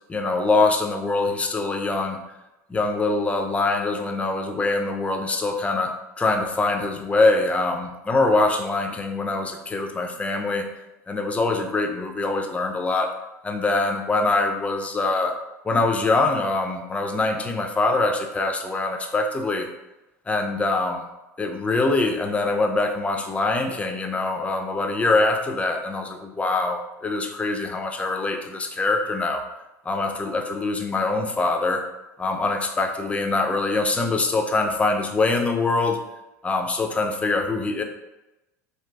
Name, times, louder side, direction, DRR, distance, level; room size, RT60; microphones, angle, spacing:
voice 1, 0.1-2.2 2.7-5.9 6.2-10.7 11.1-13.1 13.4-15.3 15.6-19.7 20.3-21.0 21.4-29.4 29.9-31.8 32.2-36.0 36.4-37.8, left 3 dB, 15° left, 4 dB, 0.4 m, -23 dB
3.7 x 2.6 x 2.3 m, 0.99 s
hypercardioid pair, 80°, 9 cm